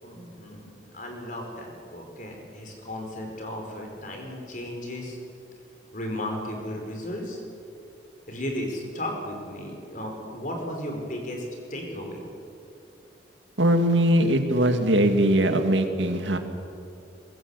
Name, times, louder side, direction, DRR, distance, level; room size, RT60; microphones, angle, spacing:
voice 1, 0.0-5.2 5.9-7.4 8.3-11.4 11.7-12.2, left 1 dB, 45° left, 2 dB, 5.0 m, -35 dB
voice 2, 13.6-16.4, right 1 dB, 85° right, 6 dB, 2.3 m, -21 dB
22.5 x 21.0 x 8.4 m, 2.6 s
head